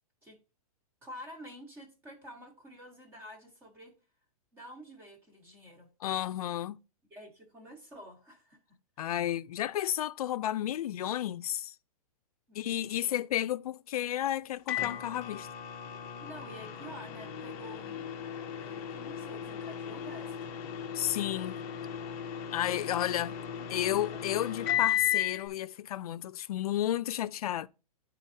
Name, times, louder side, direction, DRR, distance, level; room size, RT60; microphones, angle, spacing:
voice 1, 1.0-3.9 4.5-5.9 7.1-8.6 12.5-13.2 16.2-18.1 18.5-20.6 23.9-24.0, equal, 10° right, 1.2 m, -49 dB
voice 2, 6.0-6.8 9.0-11.7 12.5-15.5 20.9-21.6 22.5-23.4 23.7-27.7, left 12 dB, 75° left, 0.4 m, -32 dB
Microwave oven, 14.7-25.4, left 10 dB, 25° left, 0.7 m, -35 dB
11.0 x 4.0 x 2.7 m
hypercardioid pair, 175°, 19 cm